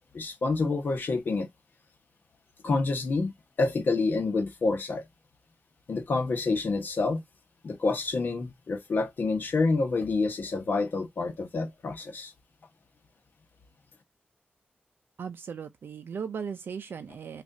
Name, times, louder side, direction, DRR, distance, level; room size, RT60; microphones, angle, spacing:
voice 1, 0.1-1.5 2.6-3.3 3.6-5.0 5.9-7.2 7.6-12.3, left 3 dB, 60° left, 1.0 m, -28 dB
voice 2, 15.2-17.4, right 6 dB, 70° right, 0.5 m, -37 dB
6.2 x 2.5 x 2.6 m
wide cardioid pair, 145°, 4 cm